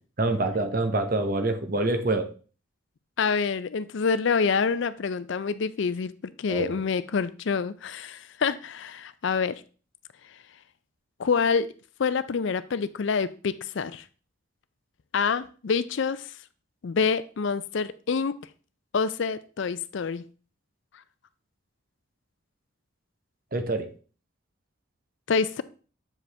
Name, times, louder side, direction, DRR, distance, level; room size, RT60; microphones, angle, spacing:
voice 1, 0.2-2.3 6.5-6.8 23.5-23.9, right 2 dB, 45° right, 0.9 m, -26 dB
voice 2, 3.2-6.1 6.4-9.6 11.2-11.7 12.0-14.0 15.1-16.4 16.8-18.4 18.9-20.2 25.3-25.6, left 5 dB, 65° left, 0.4 m, -27 dB
7.8 x 4.9 x 3.4 m
head